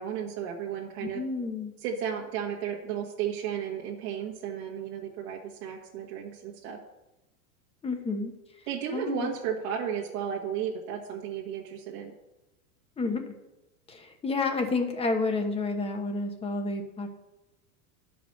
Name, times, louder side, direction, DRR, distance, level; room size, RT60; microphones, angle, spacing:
voice 1, 0.0-1.2 1.8-6.8 8.7-12.1, right 8 dB, 50° right, -1 dB, 1.5 m, -34 dB
voice 2, 1.0-1.7 7.8-8.3 8.9-9.3 13.0-13.3 13.9-17.1, left 3 dB, 15° left, 4 dB, 1.1 m, -30 dB
11.0 x 5.1 x 6.5 m, 0.99 s
supercardioid pair, 140°, 46 cm